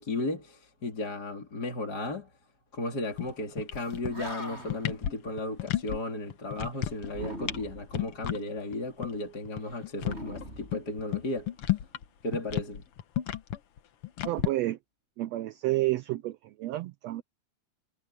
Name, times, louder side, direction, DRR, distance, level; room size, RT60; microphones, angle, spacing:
voice 1, 0.0-2.3 2.7-11.8 12.2-12.8, left 2 dB, 30° left, 3.6 m, -35 dB
sound 1, 3.1-3.3 3.6-4.3 4.6-6.0 6.3-7.1 7.4-7.6 7.9-8.4 8.7-8.8 9.0-9.1 9.4-12.0 12.3-14.5, left 13 dB, 60° left, 1.6 m, -32 dB
Animal, 3.8-3.9 4.1-4.9 7.1-8.0 10.0-11.3, equal, 20° right, 7.9 m, -40 dB
voice 2, 14.2-14.8 15.2-17.2, right 17 dB, 85° right, 1.5 m, -30 dB
omnidirectional pair, 3.7 m